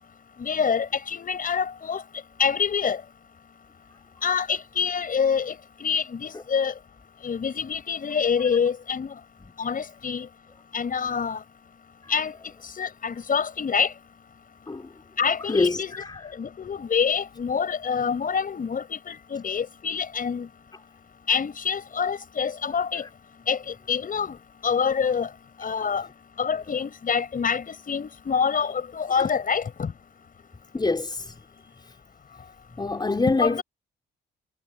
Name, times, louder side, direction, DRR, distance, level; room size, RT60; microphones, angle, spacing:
voice 1, 0.4-2.0 2.4-3.0 4.2-5.6 5.8-6.7 7.2-9.1 9.6-10.3 10.7-11.4 12.1-12.3 12.8-13.9 15.2-15.9 16.4-20.5 21.3-23.0 23.5-24.4 24.6-25.3 25.6-26.0 26.4-29.9 33.4-33.6, left 6 dB, 45° left, 5.8 m, -26 dB
voice 2, 15.5-15.8 30.7-31.3 32.8-33.6, left 3 dB, 20° left, 5.0 m, -24 dB
cardioid pair, 90°, 20 cm